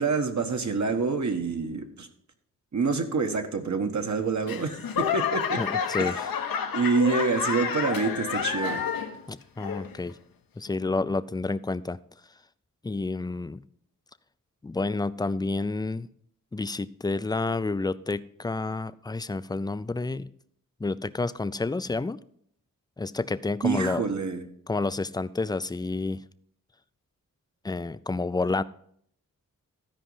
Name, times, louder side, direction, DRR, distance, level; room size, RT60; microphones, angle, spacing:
voice 1, 0.0-2.1 2.7-5.6 6.0-6.2 6.7-8.9 23.6-24.5, right 4 dB, 55° right, 5 dB, 1.4 m, -27 dB
Laughter / Clapping / Crowd, 4.5-9.2 9.6-10.1 10.7-10.8, left 7 dB, 80° left, 1.0 m, -29 dB
voice 2, 5.6-6.2 9.3-10.1 10.6-12.0 12.8-13.6 14.6-16.1 16.5-20.3 20.8-22.2 23.0-24.0 24.7-26.2 27.6-28.6, left 3 dB, 10° left, 15 dB, 0.4 m, -29 dB
13.0 x 5.1 x 5.6 m, 0.66 s
cardioid pair, 55°, 34 cm